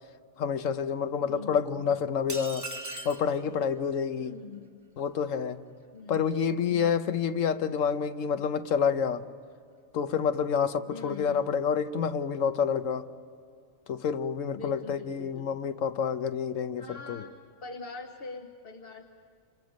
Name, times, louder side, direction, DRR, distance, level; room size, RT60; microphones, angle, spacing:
voice 1, 0.4-2.7 3.0-4.3 5.0-5.6 6.1-9.3 9.9-13.1 13.9-17.2, left 7 dB, 75° left, 11 dB, 1.2 m, -28 dB
voice 2, 1.2-2.0 4.1-4.8 5.9-7.0 10.9-11.4 14.5-15.6 16.8-17.3 17.6-19.0, left 4 dB, 50° left, 2 dB, 1.3 m, -44 dB
sound 1, 2.3-3.3, right 1 dB, 15° right, 1.0 m, -38 dB
28.0 x 27.0 x 5.2 m, 2.2 s
omnidirectional pair, 1.4 m